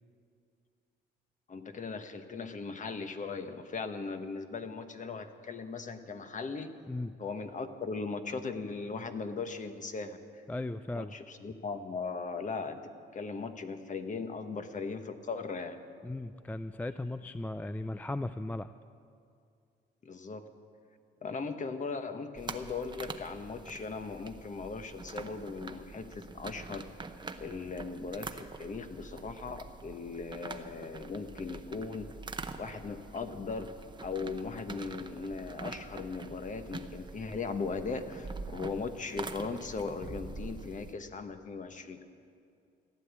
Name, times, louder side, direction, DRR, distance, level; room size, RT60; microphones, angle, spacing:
voice 1, 1.5-6.7 7.2-10.4 10.9-15.8 20.0-20.5 21.2-26.8 27.4-32.1 32.6-33.7 34.0-42.0, left 4 dB, 40° left, 8 dB, 1.2 m, -38 dB
voice 2, 10.5-11.1 16.0-18.7, left 2 dB, 10° left, 12 dB, 0.3 m, -37 dB
sound 1, 22.4-40.9, right 3 dB, 25° right, 0.8 m, -45 dB
15.5 x 9.8 x 8.2 m, 2.4 s
cardioid pair, 90°, 20 cm